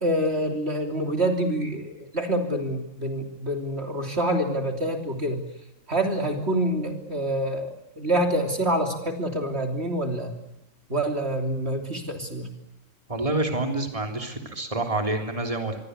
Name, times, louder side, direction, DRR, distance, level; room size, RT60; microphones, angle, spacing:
voice 1, 0.0-5.4 5.9-10.3 10.9-12.5, right 1 dB, 50° right, 5 dB, 3.5 m, -26 dB
voice 2, 13.1-15.8, right 2 dB, 25° right, 4 dB, 3.4 m, -27 dB
26.5 x 24.0 x 8.1 m, 0.90 s
omnidirectional pair, 1.4 m